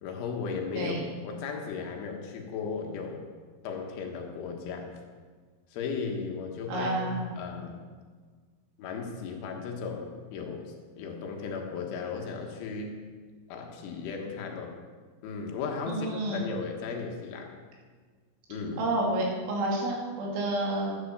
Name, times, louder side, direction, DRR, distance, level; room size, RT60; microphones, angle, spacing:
voice 1, 0.0-3.2 3.6-4.9 5.7-7.8 8.8-13.0 13.5-14.8 15.2-17.5 18.5-18.9, left 5 dB, 70° left, 2 dB, 3.7 m, -36 dB
voice 2, 6.7-7.3 15.9-16.4 18.8-20.9, right 1 dB, 65° right, -2 dB, 4.8 m, -29 dB
11.5 x 9.8 x 7.1 m, 1.5 s
omnidirectional pair, 6.0 m